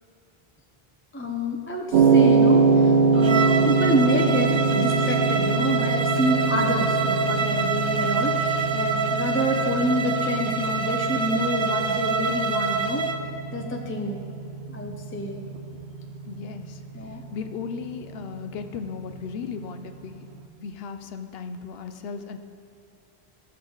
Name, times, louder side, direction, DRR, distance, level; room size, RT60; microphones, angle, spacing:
voice 1, 1.1-13.0 13.5-14.2 14.7-15.4 17.0-17.2, equal, 15° left, 1 dB, 0.5 m, -28 dB
sound 1, 1.9-20.2, right 4 dB, 80° right, 0.9 m, -25 dB
Bowed string instrument, 3.2-13.2, right 4 dB, 50° right, 0.3 m, -26 dB
voice 2, 16.2-20.3 20.6-22.4, left 6 dB, 70° left, 8 dB, 0.8 m, -36 dB
15.0 x 6.7 x 3.9 m, 2.5 s
omnidirectional pair, 1.1 m